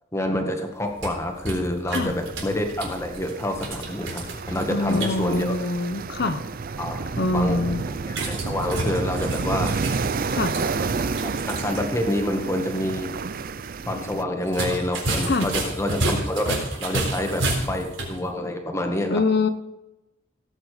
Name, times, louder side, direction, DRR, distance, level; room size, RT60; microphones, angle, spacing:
voice 1, 0.1-5.6 6.8-7.6 8.1-9.7 10.7-11.1 11.5-13.2 13.9-19.2, left 1 dB, 15° left, 3 dB, 1.7 m, -27 dB
sound 1, 0.7-5.5 8.1-11.8 12.1-12.2 14.4-18.2, right 2 dB, 70° right, 3.9 m, -31 dB
sound 2, 2.1-14.2, right 4 dB, 45° right, 0.5 m, -30 dB
voice 2, 4.7-6.5 7.2-7.8 10.3-10.5 15.3-15.5 19.1-19.5, left 3 dB, 55° left, 9 dB, 0.9 m, -24 dB
17.0 x 8.7 x 5.0 m, 0.95 s
head